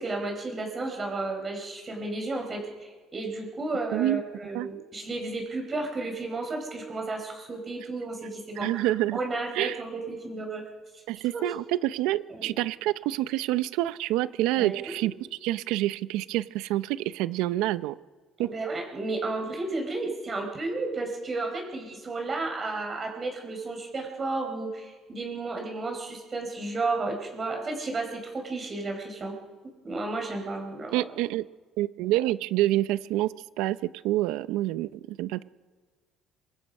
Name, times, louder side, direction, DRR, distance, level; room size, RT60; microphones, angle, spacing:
voice 1, 0.0-8.9 9.1-10.6 10.9-11.0 11.3-11.5 12.3-12.5 14.6-15.1 18.4-29.3 29.8-31.0, right 3 dB, 20° right, 2 dB, 4.6 m, -33 dB
voice 2, 8.6-9.2 9.5-9.8 11.1-15.1 15.4-17.9 18.4-18.5 30.9-31.5 31.8-35.4, right 15 dB, 80° right, 15 dB, 0.7 m, -27 dB
27.0 x 24.5 x 5.5 m, 1.4 s
cardioid pair, 170°, 0 cm